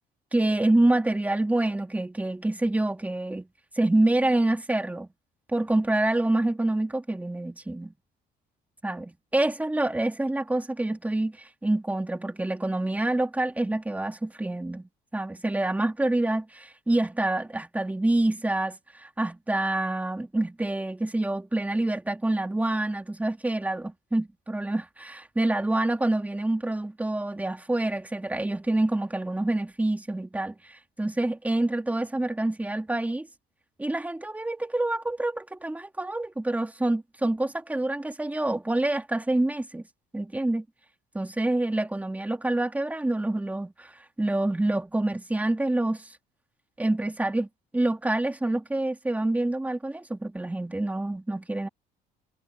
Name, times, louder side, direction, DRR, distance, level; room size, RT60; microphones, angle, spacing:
voice 1, 0.3-3.5 3.8-5.1 5.5-7.9 8.8-33.3 33.8-39.8 40.1-40.6 41.1-46.1 46.8-47.5 47.7-51.7, right 2 dB, 10° right, 2.5 m, -27 dB
cardioid pair, 110°, 17 cm